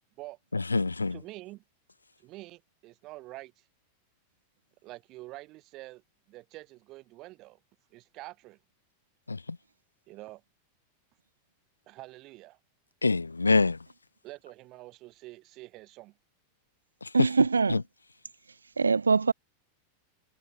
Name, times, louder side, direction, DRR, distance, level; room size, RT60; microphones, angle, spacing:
voice 1, 0.5-1.2 9.3-9.6 13.0-13.8 17.0-17.3 17.7-17.8, left 3 dB, 80° left, 0.8 m, -25 dB
voice 2, 1.1-1.6 2.2-3.6 4.8-6.0 6.3-7.6 7.9-8.6 10.1-10.4 11.9-12.6 14.2-16.1, right 19 dB, 40° right, 8.0 m, -46 dB
voice 3, 17.1-17.8 18.8-19.3, right 4 dB, 75° right, 0.4 m, -23 dB
figure-of-eight pair, 90°, 0 cm